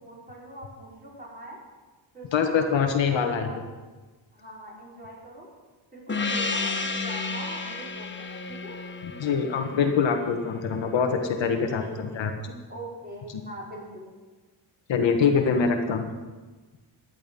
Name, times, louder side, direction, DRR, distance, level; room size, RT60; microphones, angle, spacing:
voice 1, 0.0-1.6 2.1-2.6 3.0-3.6 4.3-5.5 5.9-8.8 10.8-10.9 11.6-11.7 12.1-12.2 12.7-14.1, right 1 dB, 20° right, -4 dB, 4.8 m, -42 dB
voice 2, 2.3-3.5 6.2-6.3 9.0-12.5 14.9-16.1, left 6 dB, 65° left, 4 dB, 1.5 m, -24 dB
Gong, 6.1-11.1, left 3 dB, 25° left, 1.2 m, -32 dB
15.5 x 10.5 x 5.4 m, 1.3 s
cardioid pair, 125°, 48 cm